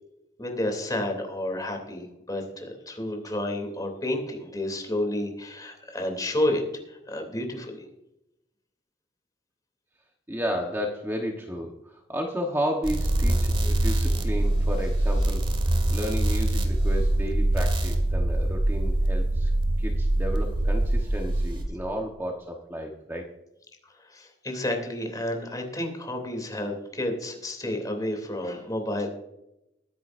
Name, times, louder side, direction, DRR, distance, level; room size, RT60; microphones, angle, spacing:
voice 1, 0.4-6.6 6.9-7.9 24.1-29.1, left 1 dB, 20° left, 3 dB, 2.9 m, -30 dB
voice 2, 10.3-15.4 15.9-19.5 19.8-23.3, equal, 15° right, 1 dB, 1.2 m, -32 dB
sound 1, 12.8-21.6, right 1 dB, 30° right, 1.9 m, -24 dB
21.5 x 10.5 x 2.6 m, 0.87 s
head